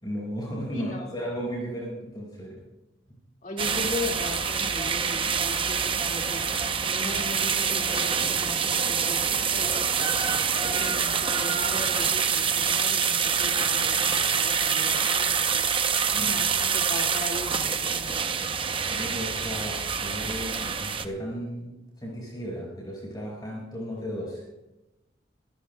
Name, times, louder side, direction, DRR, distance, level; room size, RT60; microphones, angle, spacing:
voice 1, 0.0-2.6 16.2-16.3 18.7-21.7 22.0-24.4, equal, 20° left, -3 dB, 5.3 m, -35 dB
voice 2, 0.7-1.1 3.4-6.5 6.8-10.1 10.6-15.6 16.1-18.2, left 2 dB, 40° left, 1 dB, 2.2 m, -38 dB
sound 1, 3.6-21.1, right 6 dB, 25° right, 0.8 m, -26 dB
26.0 x 16.5 x 2.3 m, 0.98 s
head